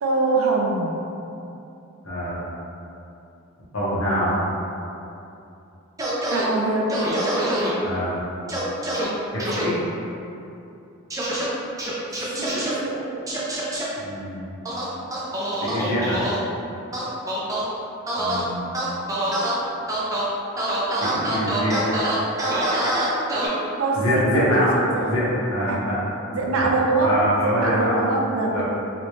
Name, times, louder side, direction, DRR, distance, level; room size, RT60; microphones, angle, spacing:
voice 1, 0.0-1.0 6.2-7.0 12.4-13.4 23.8-25.1 25.6-25.9 26.3-28.6, right 3 dB, 70° right, -1 dB, 0.5 m, -24 dB
voice 2, 2.0-2.4 3.7-4.4 7.8-8.2 9.3-9.8 14.0-14.5 15.6-16.2 18.2-18.7 21.0-21.8 24.0-24.7 25.0-26.0 26.3-26.4 27.0-28.0 28.5-28.6, equal, 65° left, -9 dB, 1.1 m, -24 dB
sound 1, 6.0-6.5 6.9-7.7 8.5-9.1 9.4-9.6 11.1-11.4 11.8-12.7 13.3-13.8 14.6-16.4 16.9-17.6 18.1-18.4 18.7-19.5 19.9-20.2 20.6-23.5, right 1 dB, 15° right, 0.5 m, -25 dB
3.0 x 3.0 x 3.1 m, 2.8 s
head